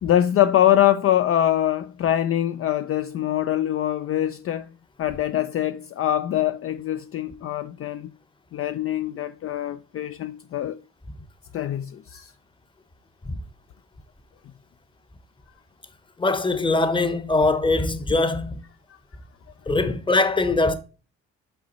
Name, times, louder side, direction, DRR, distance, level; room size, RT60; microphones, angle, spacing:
voice 1, 0.0-4.7 5.0-8.1 8.5-10.8 11.5-12.3, left 12 dB, 50° left, 0.4 m, -23 dB
voice 2, 16.2-18.6 19.7-20.7, left 2 dB, 15° left, 0.9 m, -22 dB
5.7 x 5.1 x 4.1 m
cardioid pair, 90°, 30 cm